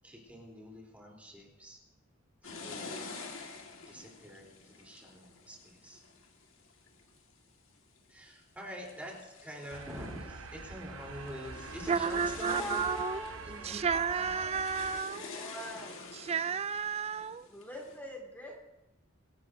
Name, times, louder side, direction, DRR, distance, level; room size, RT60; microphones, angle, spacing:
voice 1, 0.0-1.8 2.4-3.1 3.9-6.0 8.1-12.9 13.4-14.3, equal, 5° right, 3.7 m, -46 dB
sound 1, 2.4-7.2 7.8-8.3 8.7-18.0, left 4 dB, 80° left, 1.9 m, -48 dB
sound 2, 9.7-15.0, right 4 dB, 85° right, 1.0 m, -45 dB
voice 2, 11.9-13.2 13.6-15.3 16.1-17.5, right 6 dB, 30° right, 0.4 m, -32 dB
voice 3, 12.5-14.5 15.1-16.0 17.5-18.6, left 1 dB, 10° left, 2.3 m, -43 dB
25.0 x 12.5 x 2.7 m
head